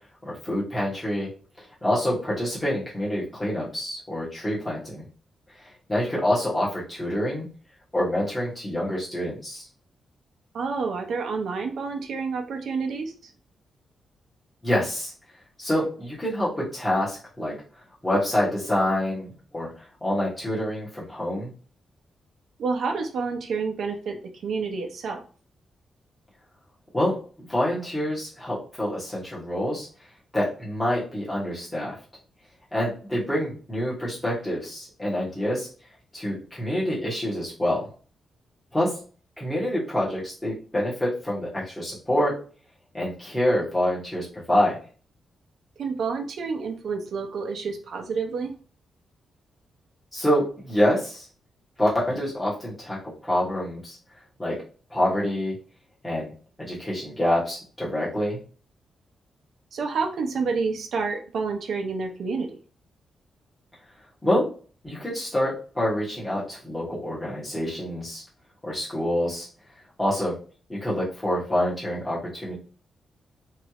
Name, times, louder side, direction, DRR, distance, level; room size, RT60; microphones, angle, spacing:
voice 1, 0.2-1.3 1.8-5.0 5.9-7.5 7.9-9.6 14.6-15.1 15.6-17.5 18.0-19.7 20.0-21.5 26.9-27.2 27.5-29.9 30.3-31.9 32.7-35.7 36.1-37.9 38.7-38.9 39.4-42.3 42.9-44.8 50.1-51.2 51.8-53.0 53.2-54.0 54.4-54.6 54.9-55.5 56.0-56.3 56.6-58.4 64.2-64.5 64.8-68.2 68.6-69.5 70.0-70.4 70.7-72.5, left 1 dB, 10° left, -7 dB, 1.3 m, -26 dB
voice 2, 10.5-13.3 22.6-25.2 45.8-48.5 59.7-62.5, right 4 dB, 60° right, 3 dB, 0.7 m, -29 dB
3.2 x 2.6 x 2.9 m, 0.39 s
wide cardioid pair, 170°, 0 cm